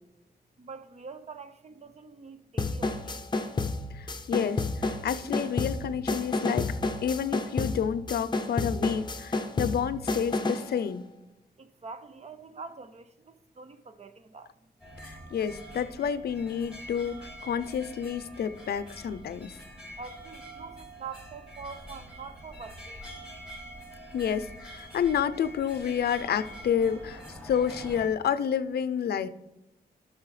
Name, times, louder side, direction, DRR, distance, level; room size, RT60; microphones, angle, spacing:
voice 1, 0.6-3.3 11.6-14.7 20.0-23.2, right 5 dB, 40° right, 0.7 m, -45 dB
sound 1, 2.6-10.7, left 3 dB, 25° left, 0.6 m, -30 dB
voice 2, 3.9-6.8 7.0-11.1 15.0-19.6 24.1-29.3, left 8 dB, 75° left, 0.5 m, -29 dB
sound 2, 14.8-28.1, equal, 5° right, 2.3 m, -45 dB
13.5 x 6.4 x 3.2 m
wide cardioid pair, 120°, 17 cm